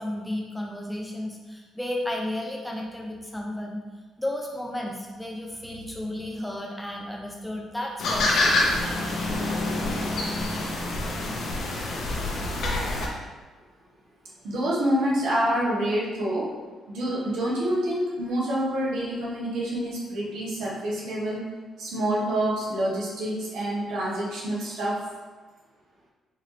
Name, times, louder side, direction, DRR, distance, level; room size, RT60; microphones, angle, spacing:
voice 1, 0.0-3.8 4.2-8.6, left 1 dB, 5° left, -1 dB, 0.6 m, -33 dB
sound 1, 8.0-13.1, left 2 dB, 70° left, 0.8 m, -26 dB
voice 2, 14.4-16.5 16.9-21.5 21.8-25.0, right 1 dB, 80° right, -5 dB, 1.1 m, -27 dB
4.1 x 2.8 x 3.2 m, 1.3 s
cardioid pair, 90°, 0 cm